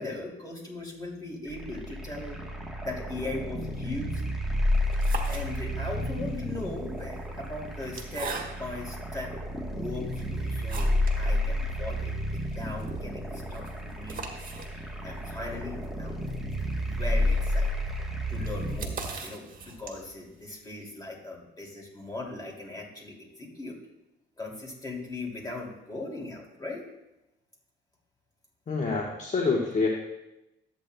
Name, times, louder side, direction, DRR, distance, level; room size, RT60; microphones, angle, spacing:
voice 1, 0.0-2.4 2.8-4.2 5.3-8.3 8.6-14.4 14.7-16.2 16.8-17.7 18.3-23.7 24.4-26.8, left 2 dB, 20° left, -2 dB, 2.6 m, -39 dB
sound 1, 1.5-18.8, left 1 dB, ahead, 1.2 m, -31 dB
sound 2, 4.8-6.0 6.8-8.9 9.5-9.6 10.1-11.2 11.5-11.6 11.9-12.0 12.4-20.2, right 4 dB, 45° right, 1.4 m, -41 dB
voice 2, 28.7-29.9, left 4 dB, 40° left, -2 dB, 1.3 m, -26 dB
13.0 x 8.4 x 2.2 m, 0.92 s
cardioid pair, 90°, 20 cm